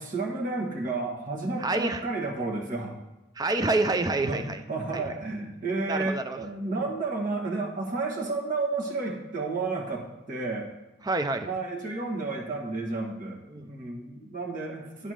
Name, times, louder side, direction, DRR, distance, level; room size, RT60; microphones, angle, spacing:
voice 1, 0.0-3.0 4.2-10.7 11.4-15.1, right 3 dB, 40° right, -1 dB, 1.4 m, -31 dB
voice 2, 1.6-2.0 3.4-4.6 4.9-5.1 5.9-6.4 11.0-11.5 13.5-13.7, right 2 dB, 20° right, 8 dB, 0.4 m, -27 dB
10.0 x 3.6 x 6.2 m, 1.0 s
head